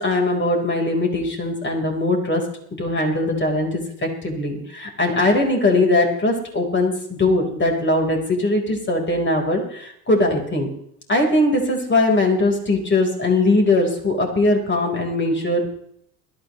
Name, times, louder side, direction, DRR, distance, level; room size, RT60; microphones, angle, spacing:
voice 1, 0.0-2.5 2.8-10.7 11.1-15.7, left 2 dB, 20° left, 1 dB, 4.5 m, -20 dB
21.0 x 13.0 x 3.2 m, 0.70 s
hypercardioid pair, 80°, 49 cm